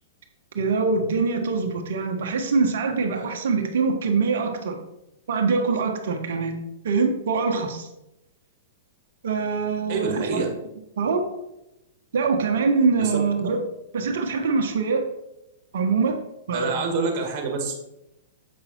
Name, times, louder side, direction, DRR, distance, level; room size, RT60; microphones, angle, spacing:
voice 1, 0.5-4.8 5.3-6.6 6.8-7.9 9.2-10.5 11.0-11.2 12.1-13.6 13.9-15.0 15.7-16.2 16.5-16.8, right 4 dB, 70° right, 5 dB, 1.2 m, -23 dB
voice 2, 9.9-10.5 13.0-13.1 16.5-17.7, right 4 dB, 50° right, 4 dB, 2.0 m, -27 dB
7.6 x 5.6 x 4.4 m, 0.89 s
hypercardioid pair, 120°, 0 cm